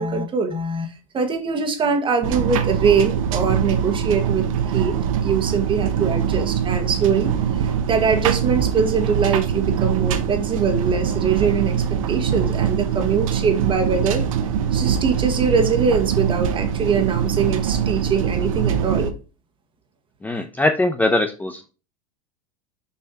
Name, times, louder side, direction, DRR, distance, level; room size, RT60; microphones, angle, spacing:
voice 1, 0.0-4.9 5.2-11.8 12.1-14.3 14.7-19.2, right 5 dB, 30° right, 6 dB, 1.7 m, -22 dB
sound 1, 2.2-19.1, right 8 dB, 70° right, 1.0 m, -23 dB
voice 2, 20.2-21.7, left 2 dB, 10° left, 6 dB, 0.8 m, -21 dB
6.7 x 5.4 x 2.9 m, 0.32 s
hypercardioid pair, 90°, 18 cm